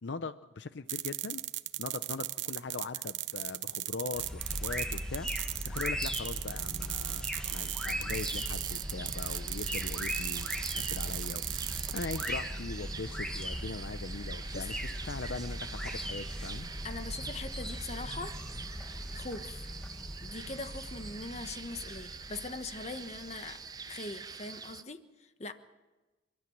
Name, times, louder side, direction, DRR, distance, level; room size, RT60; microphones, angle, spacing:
voice 1, 0.0-1.4 1.8-5.3 5.6-14.8 15.1-16.7, left 4 dB, 80° left, 12 dB, 0.7 m, -41 dB
sound 1, 0.9-12.3, right 15 dB, 85° right, 0.8 m, -37 dB
sound 2, 4.1-23.5, equal, 5° left, 1.7 m, -39 dB
sound 3, 7.9-24.8, right 5 dB, 20° right, 0.7 m, -46 dB
voice 2, 16.8-18.4 19.1-19.7 20.2-23.6 23.9-25.5, left 3 dB, 35° left, 9 dB, 1.2 m, -41 dB
28.5 x 12.5 x 8.7 m, 1.2 s
head